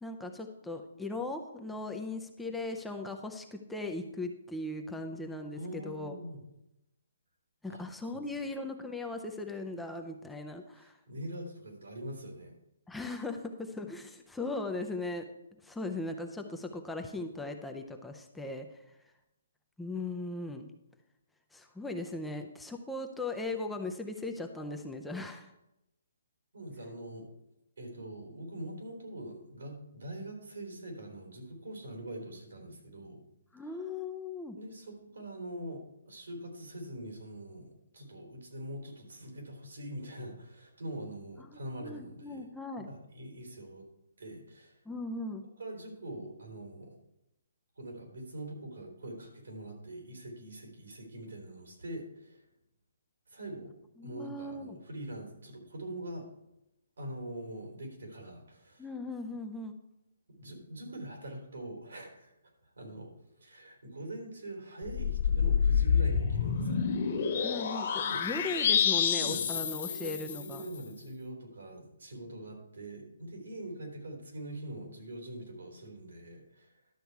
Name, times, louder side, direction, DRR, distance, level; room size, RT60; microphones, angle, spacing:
voice 1, 0.0-6.1 7.6-10.9 12.9-15.3 15.6-18.7 19.8-20.7 21.5-25.5 33.5-34.6 41.8-42.9 44.9-45.4 54.0-54.8 58.8-59.7 67.4-70.6, left 2 dB, 5° left, 3 dB, 0.5 m, -38 dB
voice 2, 5.6-6.4 7.7-7.8 10.7-12.6 26.5-27.3 27.8-33.2 34.6-42.5 42.8-43.9 44.2-44.8 45.6-47.0 47.8-52.4 53.3-53.7 54.0-56.3 57.0-58.9 60.4-62.3 62.6-63.1 63.4-66.8 68.0-68.3 69.2-76.7, right 1 dB, 80° right, 1 dB, 3.6 m, -43 dB
sound 1, 64.8-70.6, left 7 dB, 40° left, 1.3 m, -28 dB
11.5 x 6.8 x 4.7 m, 0.87 s
hypercardioid pair, 170°, 0 cm